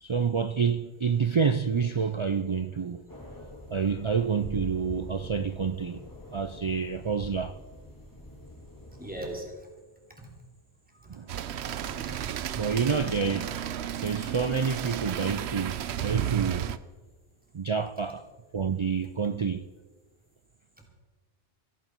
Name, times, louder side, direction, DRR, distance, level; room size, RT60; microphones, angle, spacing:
voice 1, 0.0-3.1 3.7-6.0 6.3-7.5 11.1-11.3 12.5-13.5 14.0-16.7 17.5-18.3 18.5-19.7, right 6 dB, 55° right, 0.3 m, -28 dB
sound 1, 3.1-9.3, left 1 dB, 20° left, 2.1 m, -44 dB
voice 2, 9.0-9.5 10.2-10.3 11.5-12.2 19.3-19.4, right 1 dB, 10° right, 3.1 m, -40 dB
sound 2, 11.3-16.8, right 10 dB, 85° right, 0.9 m, -33 dB
15.0 x 15.0 x 4.6 m
omnidirectional pair, 1.1 m